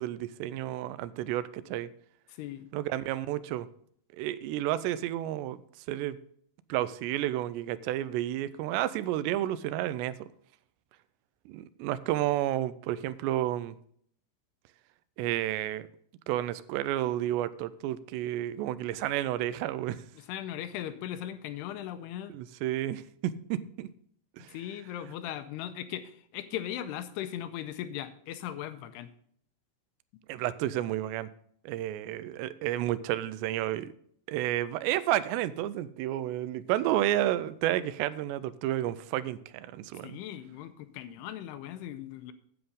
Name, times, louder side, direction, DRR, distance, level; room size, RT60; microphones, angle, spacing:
voice 1, 0.0-1.9 2.7-3.7 4.2-5.6 5.9-6.2 6.7-10.3 11.5-13.8 15.2-15.9 16.3-20.0 22.3-23.9 24.4-24.6 30.3-31.3 31.7-33.9 34.3-40.2, right 13 dB, 85° right, 16 dB, 2.8 m, -31 dB
voice 2, 20.1-22.3 24.5-29.1 40.0-42.3, left 11 dB, 85° left, 11 dB, 2.6 m, -38 dB
9.9 x 7.8 x 5.1 m, 0.64 s
omnidirectional pair, 4.9 m